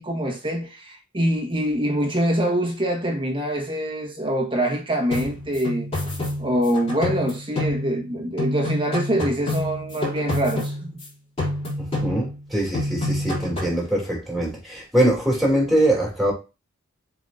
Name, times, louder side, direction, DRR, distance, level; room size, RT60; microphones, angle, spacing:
voice 1, 0.0-5.9 6.4-11.0, equal, 25° right, 1.5 m, -24 dB
sound 1, 5.1-8.1 8.4-11.1 11.4-12.5 12.7-13.8, left 1 dB, 30° left, 3.8 m, -28 dB
voice 2, 11.8-16.3, right 1 dB, ahead, 3.1 m, -22 dB
7.3 x 4.9 x 2.6 m
head